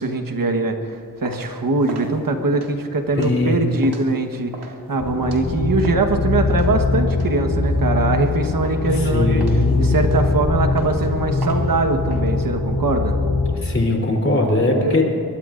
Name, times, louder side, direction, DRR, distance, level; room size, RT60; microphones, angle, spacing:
voice 1, 0.0-9.4 9.8-13.2 14.8-15.0, right 3 dB, 60° right, 5 dB, 1.4 m, -22 dB
sound 1, 0.9-6.1 6.5-8.3 8.6-9.0 9.4-12.2, right 3 dB, 85° right, 2.4 m, -38 dB
voice 2, 3.1-3.6 8.9-10.0 13.5-15.0, left 2 dB, 35° left, -1 dB, 3.6 m, -20 dB
sound 2, 5.0-13.5, left 3 dB, 65° left, 3.0 m, -21 dB
23.5 x 21.5 x 2.6 m, 2.6 s
wide cardioid pair, 105°, 38 cm